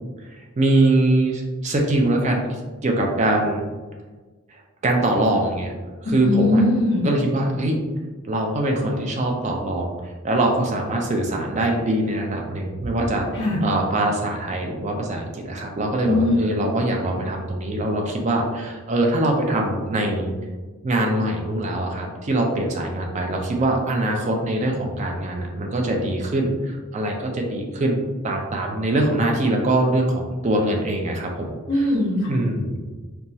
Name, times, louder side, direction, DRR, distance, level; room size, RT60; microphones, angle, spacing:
voice 1, 0.4-3.6 4.5-5.7 6.1-6.6 7.0-7.8 8.3-13.3 13.6-20.3 20.8-31.9 32.3-32.8, right 1 dB, 30° right, 1 dB, 0.3 m, -23 dB
voice 2, 6.2-7.0 13.3-13.6 16.0-16.4 31.7-32.3, left 2 dB, 50° left, -6 dB, 0.6 m, -20 dB
2.9 x 2.2 x 2.6 m, 1.3 s
head